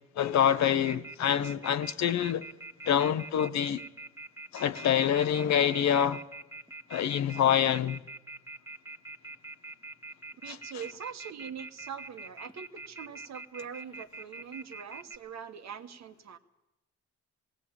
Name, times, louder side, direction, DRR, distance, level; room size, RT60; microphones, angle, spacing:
voice 1, 0.2-2.5 2.9-3.8 4.5-6.2 6.9-8.0 10.5-10.6, left 9 dB, 65° left, 1.0 m, -26 dB
Telephone, 0.9-15.2, right 2 dB, 10° right, 1.5 m, -43 dB
voice 2, 10.4-16.4, right 7 dB, 60° right, 1.4 m, -43 dB
17.5 x 17.0 x 8.9 m
cardioid pair, 90°, 30 cm